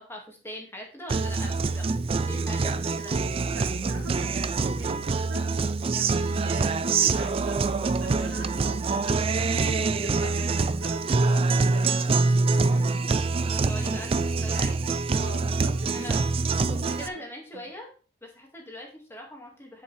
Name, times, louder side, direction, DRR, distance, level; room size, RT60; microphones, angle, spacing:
voice 1, 0.0-1.8 2.1-3.1 12.6-13.1 13.5-14.8 15.9-16.2 16.7-17.9 18.2-19.8, equal, 10° left, 0 dB, 1.9 m, -41 dB
Guitar, 1.1-17.1, right 3 dB, 30° right, 0.3 m, -25 dB
voice 2, 3.5-12.1 15.2-16.1 16.4-17.2 17.5-17.6, right 1 dB, 75° right, -3 dB, 2.0 m, -42 dB
9.8 x 5.4 x 3.2 m, 0.40 s
head